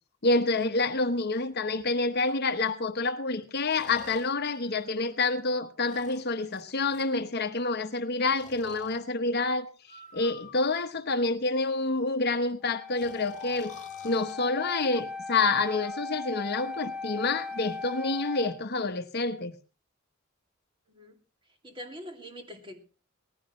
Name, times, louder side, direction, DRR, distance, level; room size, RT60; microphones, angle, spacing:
voice 1, 0.2-9.7 10.1-13.7 14.0-19.5, left 3 dB, 55° left, 1.1 m, -28 dB
Breathing, 1.8-1.9 3.7-5.4 5.8-7.1 8.3-9.0 9.8-11.0 13.0-14.3 15.4-15.9, left 4 dB, 35° left, 3.2 m, -49 dB
Wind instrument woodwind instrument, 12.6-18.6, left 4 dB, ahead, 2.4 m, -38 dB
voice 2, 20.9-21.2 21.6-22.8, equal, 25° right, 2.5 m, -43 dB
19.0 x 15.5 x 3.2 m
head